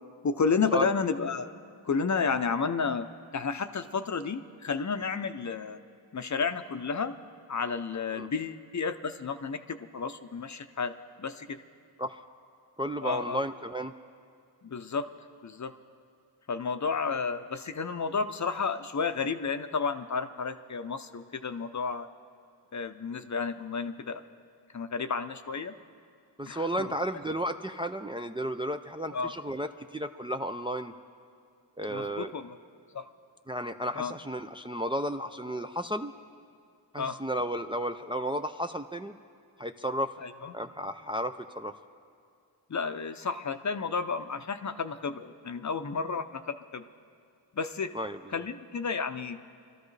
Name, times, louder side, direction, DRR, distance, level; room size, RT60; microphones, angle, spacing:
voice 1, 0.2-1.5 1.8-3.1 3.3-5.8 6.1-7.2 7.5-10.9 11.2-11.6 13.0-13.4 14.6-15.1 15.4-15.7 16.5-22.1 22.7-24.2 24.7-25.7 26.5-26.9 29.1-29.3 31.9-32.6 32.9-33.0 34.0-34.1 37.0-37.2 40.2-40.5 42.7-46.8 47.5-47.9 48.3-49.4, left 5 dB, 40° left, 9 dB, 0.7 m, -31 dB
voice 2, 12.8-13.9 26.4-30.9 31.8-32.3 33.5-36.1 36.9-39.2 39.6-40.1 40.5-41.7 47.9-48.2, equal, 10° right, 6 dB, 0.4 m, -33 dB
25.0 x 13.0 x 3.3 m, 2.3 s
cardioid pair, 65°, 44 cm